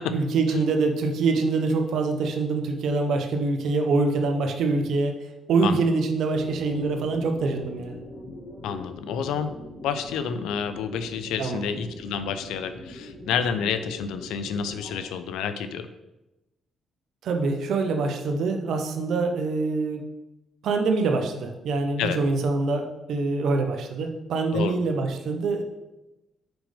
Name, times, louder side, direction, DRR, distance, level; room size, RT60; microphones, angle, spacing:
voice 1, 0.1-5.1 5.5-8.0 11.4-11.6 17.2-20.0 20.6-25.6, right 3 dB, 75° right, 4 dB, 0.8 m, -25 dB
sound 1, 6.3-15.0, left 1 dB, 65° left, 1.1 m, -42 dB
voice 2, 8.6-9.5 9.8-15.9 22.0-22.2 24.5-24.8, left 7 dB, 90° left, 11 dB, 0.4 m, -29 dB
6.0 x 5.0 x 3.4 m, 0.98 s
cardioid pair, 90°, 0 cm